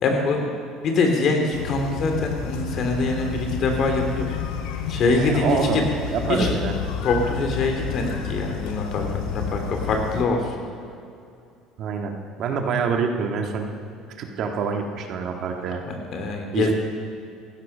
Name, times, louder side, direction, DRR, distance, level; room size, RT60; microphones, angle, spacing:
voice 1, 0.0-0.5 0.8-4.3 4.9-5.6 6.4-6.5 7.0-10.4 15.9-16.7, left 3 dB, 50° left, 3 dB, 2.8 m, -24 dB
sound 1, 1.5-10.2, left 7 dB, 85° left, 1.3 m, -30 dB
voice 2, 5.2-6.7 11.8-13.7 14.2-15.8 16.5-16.7, right 5 dB, 55° right, 3 dB, 1.7 m, -26 dB
15.5 x 12.5 x 5.6 m, 2.5 s
cardioid pair, 115°, 0 cm